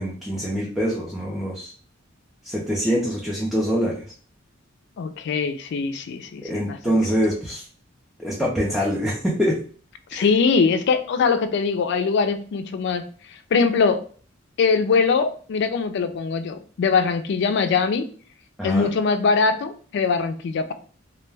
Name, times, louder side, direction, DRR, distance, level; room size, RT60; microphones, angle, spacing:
voice 1, 0.0-1.7 2.4-4.0 6.4-7.6 8.2-9.6 10.1-10.2 18.6-18.9, equal, ahead, -5 dB, 0.5 m, -24 dB
voice 2, 5.0-7.0 10.1-13.0 13.5-14.0 14.6-18.1 18.6-20.7, left 5 dB, 60° left, 9 dB, 0.3 m, -22 dB
2.2 x 2.1 x 3.2 m, 0.42 s
head